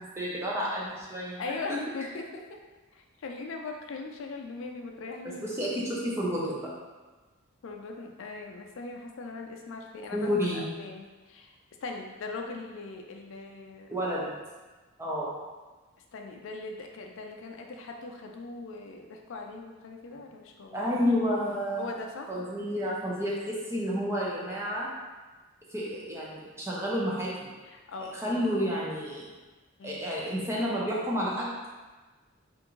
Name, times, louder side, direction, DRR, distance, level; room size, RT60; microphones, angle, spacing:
voice 1, 0.0-1.4 1.7-1.8 5.4-6.7 10.1-10.6 13.9-14.4 15.0-15.3 20.7-21.9 22.3-24.9 25.7-27.5 28.0-29.3 29.8-31.7, equal, 10° right, -6 dB, 0.5 m, -30 dB
voice 2, 1.4-2.6 2.9-5.5 7.6-13.9 16.1-20.8 21.8-22.3 27.6-28.5 29.8-30.1, left 3 dB, 60° left, 2 dB, 0.4 m, -40 dB
3.5 x 2.5 x 3.0 m, 1.3 s
head